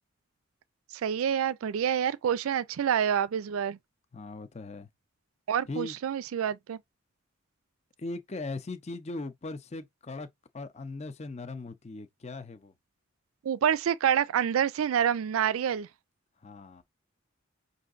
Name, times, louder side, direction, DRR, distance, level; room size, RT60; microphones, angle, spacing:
voice 1, 1.0-3.8 5.5-6.8 13.4-15.9, right 8 dB, 85° right, 0.4 m, -27 dB
voice 2, 4.1-4.9 5.7-6.0 8.0-10.3 10.5-12.7 16.4-16.8, left 2 dB, 30° left, 0.6 m, -39 dB
5.6 x 2.5 x 2.5 m
head